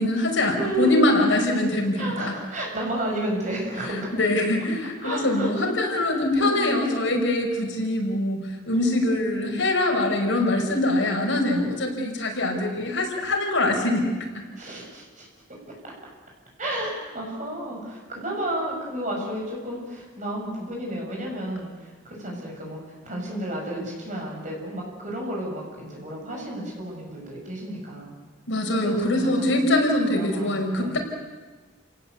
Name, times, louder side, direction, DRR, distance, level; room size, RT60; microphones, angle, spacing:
voice 1, 0.0-2.3 4.2-14.4 28.5-31.0, left 1 dB, 80° left, 1 dB, 5.4 m, -23 dB
voice 2, 0.6-1.0 2.0-4.1 5.0-6.0 6.4-7.2 8.7-9.6 11.3-12.1 14.6-15.3 16.6-28.1 28.8-29.6 30.1-31.0, right 1 dB, 40° right, -1 dB, 7.3 m, -32 dB
29.5 x 18.0 x 8.3 m, 1.3 s
head